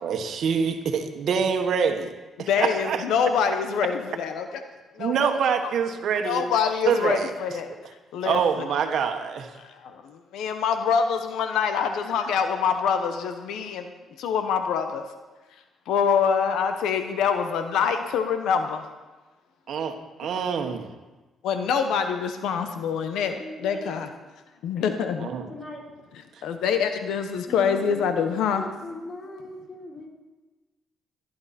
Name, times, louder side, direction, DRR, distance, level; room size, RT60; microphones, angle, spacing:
voice 1, 0.0-2.1 2.4-3.0 5.0-6.4 6.9-7.3 8.2-9.5 19.7-20.9 25.2-25.5, right 6 dB, 70° right, 6 dB, 1.4 m, -25 dB
voice 2, 2.4-4.6 5.0-5.1 6.2-7.7 8.1-8.7 9.6-13.9 14.2-15.0 15.9-18.9 21.4-24.1 24.6-25.3 26.4-28.6, left 6 dB, 85° left, 7 dB, 1.0 m, -25 dB
voice 3, 23.4-24.0 25.5-25.8 27.5-30.1, left 1 dB, 40° left, -1 dB, 4.2 m, -39 dB
18.5 x 11.5 x 4.3 m, 1.2 s
cardioid pair, 90°, 0 cm